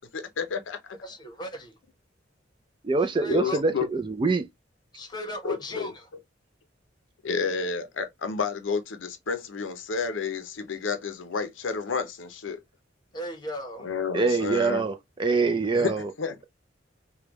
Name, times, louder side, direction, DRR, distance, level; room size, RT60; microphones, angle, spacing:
voice 1, 0.1-0.8 3.3-3.9 5.4-5.9 7.2-12.6 13.8-14.9 15.7-16.4, left 5 dB, 80° left, 0.6 m, -30 dB
voice 2, 1.0-1.7 3.2-3.6 4.9-6.1 13.1-13.9, equal, 20° left, 1.0 m, -37 dB
voice 3, 2.8-4.4 14.1-14.9 15.2-16.1, right 4 dB, 25° right, 0.4 m, -24 dB
3.4 x 2.2 x 2.9 m
head